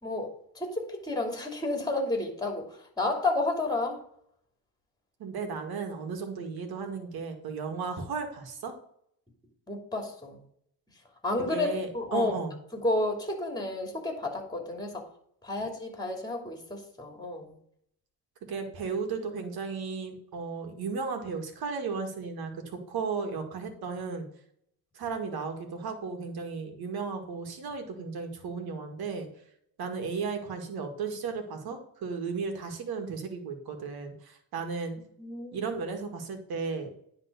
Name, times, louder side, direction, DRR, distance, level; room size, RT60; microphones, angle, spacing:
voice 1, 0.0-4.0 9.7-10.4 11.2-12.3 12.7-15.1 15.4-17.6 35.2-35.6, left 2 dB, 10° left, 3 dB, 2.8 m, -31 dB
voice 2, 5.2-8.7 11.5-12.6 18.5-24.3 24.9-29.3 29.8-35.0 35.5-36.9, right 5 dB, 70° right, 5 dB, 2.0 m, -35 dB
10.0 x 3.8 x 6.7 m, 0.68 s
cardioid pair, 90°, 38 cm